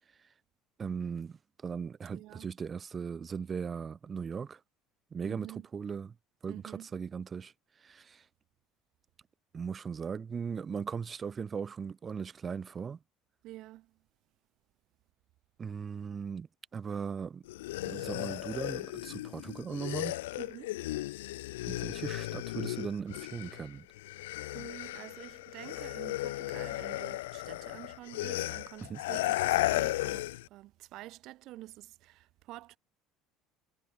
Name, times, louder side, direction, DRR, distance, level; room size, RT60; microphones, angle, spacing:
voice 1, 0.8-4.6 5.1-6.1 6.4-7.5 7.8-8.3 9.5-13.0 15.6-16.5 16.7-17.4 17.8-20.2 21.7-23.9 28.8-29.0, right 6 dB, 35° right, 1.0 m, -38 dB
voice 2, 2.1-2.5 5.3-5.7 6.5-6.9 13.4-13.9 20.4-20.7 24.5-32.8, right 17 dB, 65° right, 5.0 m, -48 dB
sound 1, 17.5-23.7 24.0-30.5, left 18 dB, 85° left, 0.6 m, -35 dB
hypercardioid pair, 75°, 0 cm